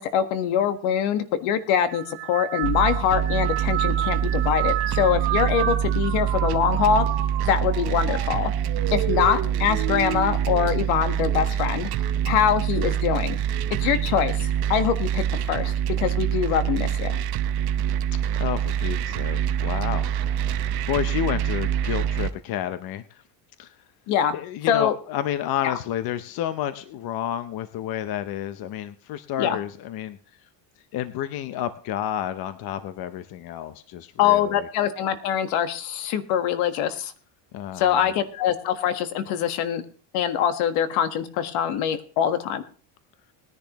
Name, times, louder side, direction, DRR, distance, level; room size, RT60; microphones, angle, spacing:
voice 1, 0.0-7.1 7.4-8.5 8.9-11.9 12.3-13.4 13.8-17.2 24.1-24.4 24.7-25.0 25.6-25.7 29.4-29.6 34.2-37.1 37.8-39.8 40.1-42.6, left 9 dB, 75° left, 9 dB, 1.6 m, -24 dB
sound 1, 1.9-11.5 12.0-12.5 13.5-13.9, right 12 dB, 70° right, 3.4 m, -32 dB
sound 2, 2.6-22.3, right 9 dB, 50° right, 0.9 m, -25 dB
voice 2, 18.4-20.3 20.9-23.0 23.6-23.7 24.3-30.2 30.9-34.7 37.5-38.1, left 11 dB, 45° left, 11 dB, 0.8 m, -30 dB
19.5 x 10.5 x 3.0 m, 0.40 s
cardioid pair, 145°, 49 cm